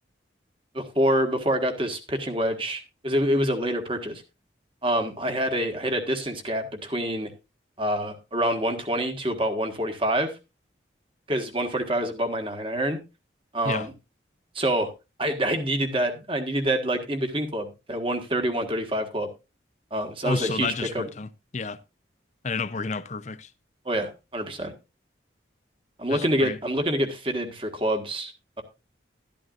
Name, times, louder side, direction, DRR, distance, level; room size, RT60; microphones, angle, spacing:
voice 1, 0.7-4.2 4.8-7.3 7.8-10.3 11.3-13.0 13.5-13.9 14.5-14.9 15.2-19.3 19.9-21.0 23.8-24.7 26.0-28.3, right 1 dB, 30° right, 1.5 m, -26 dB
voice 2, 20.2-21.8 22.4-23.5 26.1-26.6, left 4 dB, 40° left, 0.6 m, -30 dB
12.5 x 12.0 x 2.5 m
head